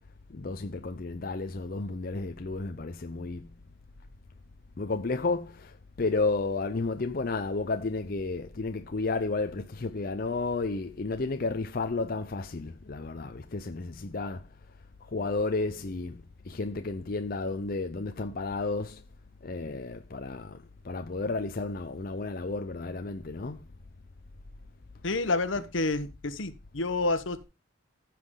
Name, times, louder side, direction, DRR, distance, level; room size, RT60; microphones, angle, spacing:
voice 1, 0.3-3.5 4.8-14.4 15.1-16.2 16.5-19.0 19.4-20.6 20.8-23.6 25.6-25.7, left 3 dB, 50° left, 0.6 m, -32 dB
voice 2, 25.0-27.4, left 2 dB, 80° left, 1.1 m, -29 dB
14.5 x 6.0 x 3.8 m
head